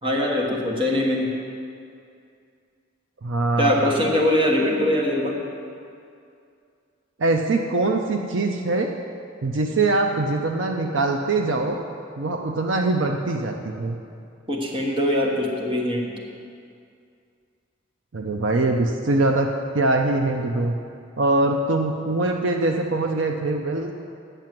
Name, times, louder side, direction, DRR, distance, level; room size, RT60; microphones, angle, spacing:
voice 1, 0.0-1.3 3.6-5.4 14.5-16.1, left 1 dB, 25° right, -1 dB, 1.3 m, -22 dB
voice 2, 3.2-4.0 7.2-8.9 9.4-11.8 12.2-14.0 18.1-19.5 19.7-20.7 21.2-24.0, right 2 dB, 70° right, 3 dB, 0.6 m, -23 dB
9.0 x 6.8 x 7.5 m, 2.4 s
head